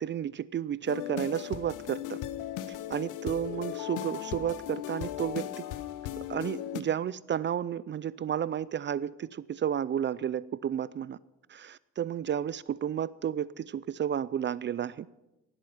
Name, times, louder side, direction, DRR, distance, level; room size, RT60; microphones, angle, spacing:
voice 1, 0.0-2.2 2.9-5.5 6.3-11.2 11.5-15.1, right 9 dB, 40° right, 0.4 m, -32 dB
sound 1, 0.9-6.8, left 12 dB, 85° left, 0.8 m, -37 dB
18.0 x 8.0 x 5.6 m
cardioid pair, 90°, 30 cm